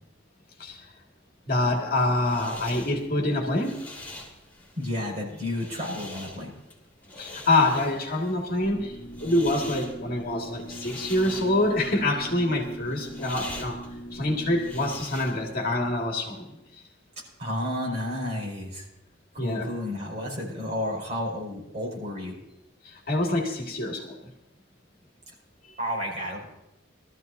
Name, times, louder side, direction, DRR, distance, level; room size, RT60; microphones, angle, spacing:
voice 1, 1.5-3.8 7.2-13.8 14.1-16.6 19.4-19.7 22.8-24.3 25.7-25.8, left 2 dB, 50° left, 0 dB, 2.0 m, -26 dB
sound 1, 1.8-15.6, left 1 dB, 10° left, 2.7 m, -44 dB
voice 2, 4.8-6.5 17.4-18.9 19.3-22.4 25.8-26.6, left 1 dB, 35° right, -2 dB, 5.5 m, -31 dB
sound 2, 8.6-15.0, right 1 dB, 70° left, 1.2 m, -41 dB
22.0 x 13.5 x 2.7 m, 0.87 s
head